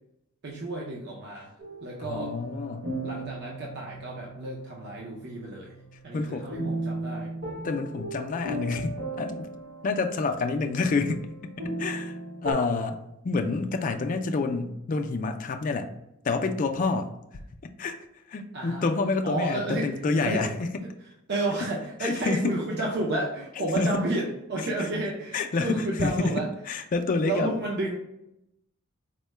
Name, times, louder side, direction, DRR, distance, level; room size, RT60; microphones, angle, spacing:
voice 1, 0.4-1.5 1.8-2.3 3.0-5.7 6.0-7.3 18.5-18.9 19.2-19.9 20.3-20.5 21.3-26.5 27.2-28.0, right 2 dB, 50° right, -3 dB, 0.5 m, -31 dB
sound 1, 1.6-12.5, right 1 dB, 75° right, 1.2 m, -37 dB
voice 2, 2.0-2.9 6.1-6.5 7.6-9.5 9.8-11.2 11.8-13.0 13.2-15.9 16.2-17.1 17.8-18.0 18.3-20.6 22.0-22.5 23.6-23.9 25.3-26.3 26.7-27.5, left 3 dB, 35° left, 5 dB, 0.3 m, -28 dB
4.4 x 2.1 x 3.1 m, 0.84 s
head